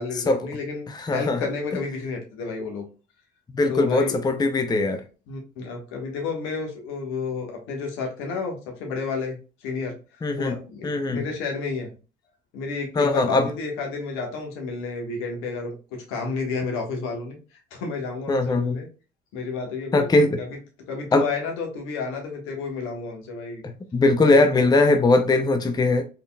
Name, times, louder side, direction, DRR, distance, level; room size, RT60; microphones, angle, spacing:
voice 1, 0.0-2.9 3.7-4.3 5.3-11.9 12.5-18.9 19.3-20.1 20.4-20.5 20.9-23.6 24.3-24.5, left 4 dB, 75° left, 1.3 m, -31 dB
voice 2, 1.0-1.5 3.5-5.0 10.2-10.6 10.8-11.2 13.0-13.5 18.3-18.8 19.9-20.4 21.1-21.3 23.9-26.0, left 2 dB, 20° left, 0.6 m, -20 dB
3.9 x 3.6 x 2.2 m
hypercardioid pair, 65°, 21 cm